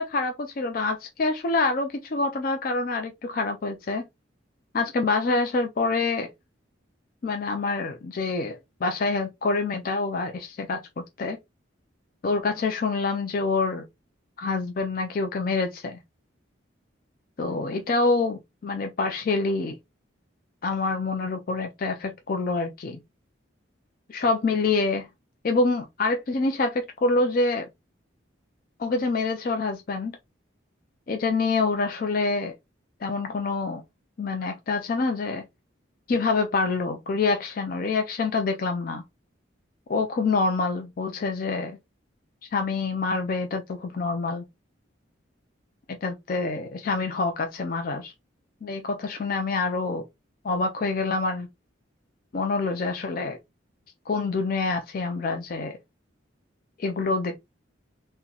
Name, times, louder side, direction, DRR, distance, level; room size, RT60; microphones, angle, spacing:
voice 1, 0.0-4.0 4.7-6.3 7.2-11.4 12.2-13.8 14.4-16.0 17.4-19.8 20.6-23.0 24.1-25.1 25.4-27.7 28.8-30.1 31.1-32.5 33.0-33.8 34.2-35.4 36.1-39.0 39.9-41.8 42.5-44.4 46.0-48.1 48.6-50.0 50.4-51.5 52.3-53.4 54.1-55.8 56.8-57.5, left 3 dB, 45° left, 0.4 m, -26 dB
3.8 x 2.1 x 2.8 m
head